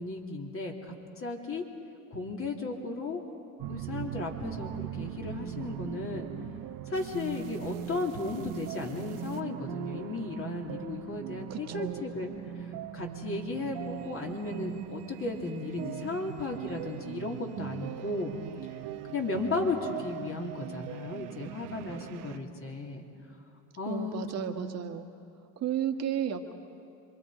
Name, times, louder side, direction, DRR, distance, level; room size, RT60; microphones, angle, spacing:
voice 1, 0.0-1.6 2.1-3.2 3.7-6.3 6.9-12.3 12.6-18.3 19.1-23.0 23.8-24.6, left 3 dB, 35° left, 0 dB, 3.1 m, -35 dB
sound 1, 3.6-22.4, right 11 dB, 60° right, 1.1 m, -40 dB
voice 2, 11.5-12.1 23.9-25.0 25.6-26.5, right 9 dB, 45° right, 5 dB, 1.7 m, -33 dB
27.0 x 23.5 x 5.0 m, 2.6 s
supercardioid pair, 85°, 37 cm